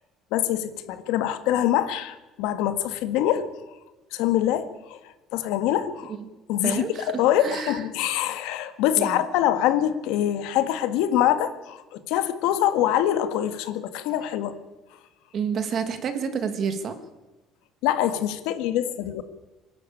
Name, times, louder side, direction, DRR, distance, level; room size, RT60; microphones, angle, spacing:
voice 1, 0.3-3.5 4.1-5.0 5.3-6.1 6.5-14.6 17.8-19.2, left 11 dB, 80° left, 10 dB, 1.8 m, -24 dB
voice 2, 6.6-7.1 7.4-7.8 8.9-9.2 15.3-17.0, right 6 dB, 35° right, 9 dB, 1.9 m, -29 dB
25.5 x 11.5 x 8.7 m, 1.1 s
cardioid pair, 175°, 0 cm